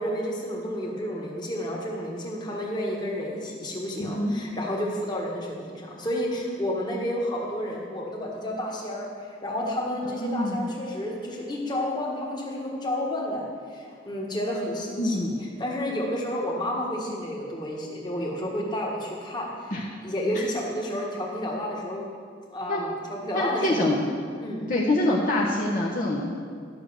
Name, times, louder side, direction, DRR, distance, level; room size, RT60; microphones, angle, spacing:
voice 1, 0.0-19.7 20.0-22.1 22.5-23.9 24.4-24.7, left 1 dB, 25° left, -2 dB, 1.6 m, -31 dB
voice 2, 4.0-4.3 10.0-10.7 15.0-15.3 19.7-19.8 20.3-20.4 22.7-22.8 23.3-24.0 24.7-26.3, left 1 dB, 45° left, -4 dB, 1.1 m, -25 dB
12.0 x 6.6 x 6.3 m, 2.1 s
head